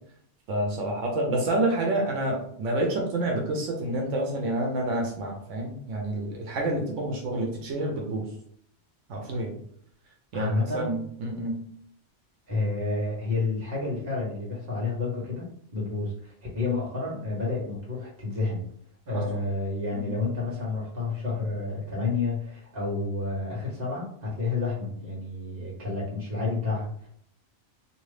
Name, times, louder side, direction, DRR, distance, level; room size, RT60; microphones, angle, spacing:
voice 1, 0.5-8.2 9.1-9.6 10.3-11.6 19.1-19.2 19.9-20.1, right 1 dB, 90° right, 0 dB, 1.0 m, -28 dB
voice 2, 10.3-10.9 12.5-18.6 19.0-27.1, left 3 dB, 50° right, -5 dB, 1.5 m, -30 dB
2.8 x 2.6 x 3.2 m, 0.65 s
omnidirectional pair, 1.2 m